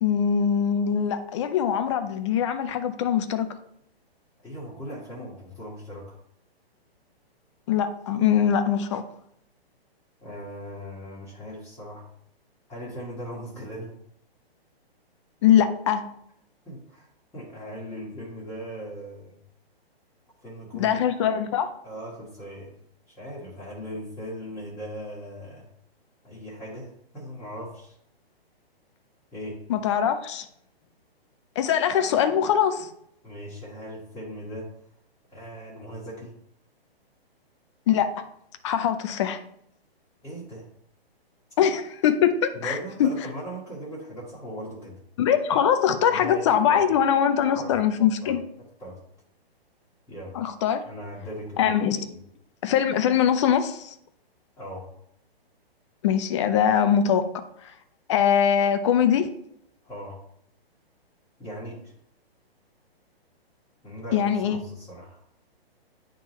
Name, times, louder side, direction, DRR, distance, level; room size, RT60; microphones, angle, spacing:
voice 1, 0.0-3.5 7.7-9.0 15.4-16.0 20.8-21.7 29.7-30.5 31.6-32.9 37.9-38.1 38.6-39.4 41.6-43.1 45.2-48.4 50.3-50.8 51.6-52.1 52.6-53.9 56.0-57.3 57.6-57.7 58.1-59.3 64.1-64.6, left 8 dB, 30° left, 9 dB, 0.6 m, -22 dB
voice 2, 4.4-6.2 10.2-12.1 12.7-14.0 16.6-17.1 17.3-19.4 20.4-21.0 21.8-22.7 23.1-25.7 26.2-28.0 29.3-29.6 33.2-34.7 35.3-36.3 40.2-40.7 42.5-45.0 46.1-46.9 47.5-47.7 48.2-48.3 48.8-49.0 50.1-50.4 50.9-51.7 52.1-52.2 54.6-54.9 59.8-60.2 61.4-61.9 63.8-65.2, equal, 10° left, -9 dB, 1.6 m, -39 dB
10.5 x 3.8 x 3.0 m, 0.70 s
hypercardioid pair, 150°, 31 cm